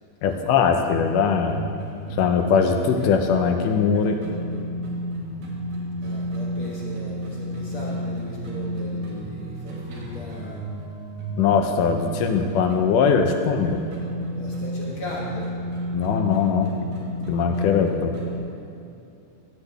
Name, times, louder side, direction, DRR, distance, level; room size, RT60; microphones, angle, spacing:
voice 1, 0.2-1.7 2.2-4.2 11.4-13.8 15.9-16.7 17.3-18.2, left 6 dB, 85° left, 5 dB, 2.3 m, -21 dB
sound 1, 0.6-18.4, right 1 dB, 85° right, 3.2 m, -32 dB
voice 2, 6.0-10.6 14.4-15.5, left 1 dB, 50° left, -5 dB, 1.9 m, -38 dB
14.0 x 8.1 x 3.4 m, 2.7 s
omnidirectional pair, 3.7 m